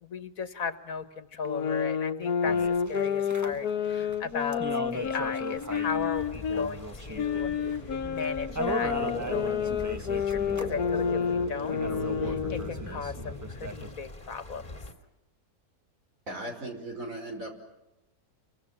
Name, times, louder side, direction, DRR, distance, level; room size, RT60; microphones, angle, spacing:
voice 1, 0.0-8.9 9.3-11.8 12.2-14.8, left 5 dB, 65° left, 12 dB, 1.8 m, -36 dB
sound 1, 1.4-6.7 7.2-12.8, left 7 dB, 90° left, 1.7 m, -30 dB
sound 2, 2.4-13.9, right 1 dB, 10° right, 1.3 m, -39 dB
sound 3, 6.1-14.9, equal, 25° left, 2.6 m, -40 dB
voice 2, 16.3-17.5, right 1 dB, 60° right, 3 dB, 5.6 m, -37 dB
29.5 x 24.0 x 7.4 m, 0.95 s
omnidirectional pair, 1.6 m